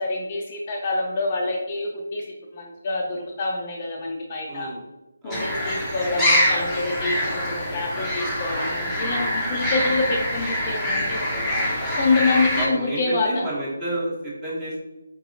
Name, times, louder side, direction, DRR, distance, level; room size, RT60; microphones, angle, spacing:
voice 1, 0.0-2.2 2.5-4.7 5.2-11.3 12.0-13.5, left 3 dB, 30° left, 0 dB, 0.5 m, -26 dB
voice 2, 4.5-4.8 5.2-5.5 9.1-9.3 11.3-12.0 12.6-14.8, right 1 dB, 15° right, -6 dB, 1.2 m, -31 dB
sound 1, 5.3-12.7, left 1 dB, 5° left, 0.8 m, -25 dB
4.5 x 2.7 x 2.6 m, 0.99 s
figure-of-eight pair, 155°, 0 cm